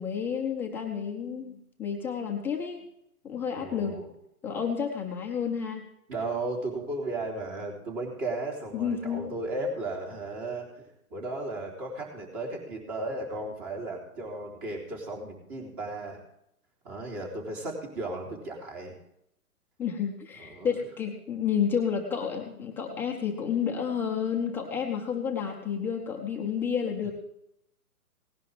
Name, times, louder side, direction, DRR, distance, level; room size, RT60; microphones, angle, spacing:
voice 1, 0.0-2.8 3.2-4.0 4.4-5.9 8.7-9.3 19.8-27.1, left 7 dB, 5° left, -1 dB, 0.6 m, -30 dB
voice 2, 3.5-4.1 6.1-16.2 16.8-19.0 20.4-20.8, right 2 dB, 25° right, 0 dB, 3.8 m, -35 dB
18.0 x 10.5 x 3.5 m, 0.77 s
figure-of-eight pair, 130°, 46 cm